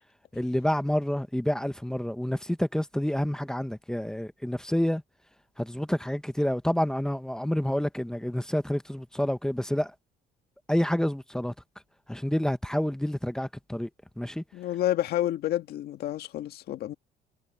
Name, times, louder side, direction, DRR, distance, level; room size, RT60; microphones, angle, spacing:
voice 1, 0.3-5.0 5.6-9.9 10.7-11.5 12.1-13.9 14.2-14.4, equal, 5° left, 1.1 m, -28 dB
voice 2, 14.5-16.9, left 13 dB, 70° left, 1.8 m, -29 dB
cardioid pair, 110°, 17 cm